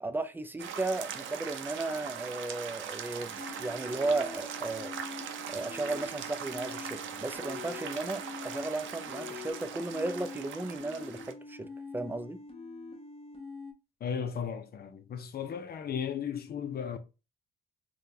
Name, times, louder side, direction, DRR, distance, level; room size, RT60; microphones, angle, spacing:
voice 1, 0.0-4.9 5.5-11.7 11.9-12.4, right 2 dB, 10° right, 0.5 m, -35 dB
sound 1, 0.6-11.3, right 8 dB, 75° right, 0.6 m, -41 dB
sound 2, 3.4-13.7, left 4 dB, 30° left, 1.2 m, -45 dB
voice 2, 14.0-17.0, left 7 dB, 50° left, 0.6 m, -35 dB
3.6 x 2.3 x 2.8 m
cardioid pair, 90°, 20 cm